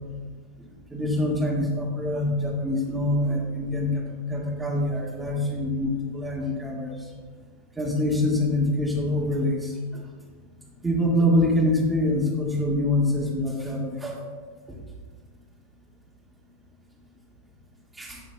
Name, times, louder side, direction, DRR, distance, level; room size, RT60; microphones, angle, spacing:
voice 1, 0.9-4.0 4.3-6.9 7.8-10.0 10.8-14.2 18.0-18.2, left 1 dB, 10° right, -2 dB, 1.9 m, -25 dB
11.5 x 8.8 x 2.3 m, 1.5 s
figure-of-eight pair, 90°, 0 cm